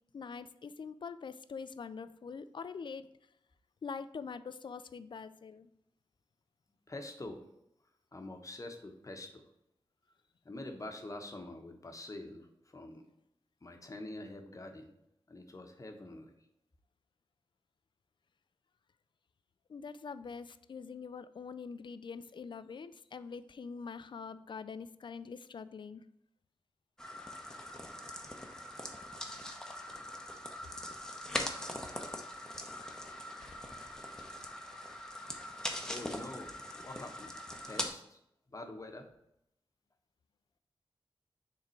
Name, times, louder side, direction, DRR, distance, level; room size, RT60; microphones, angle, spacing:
voice 1, 0.1-3.1 3.8-5.7 19.7-26.0, left 5 dB, 60° left, 13 dB, 0.4 m, -44 dB
voice 2, 6.9-7.4 8.1-9.4 10.4-13.0 13.6-14.9 15.3-16.4 35.8-38.2 38.5-39.1, left 2 dB, 35° left, 4 dB, 0.9 m, -46 dB
sound 1, 27.0-37.9, left 1 dB, 5° left, 0.8 m, -42 dB
6.7 x 3.6 x 4.4 m, 0.79 s
wide cardioid pair, 90°, 9 cm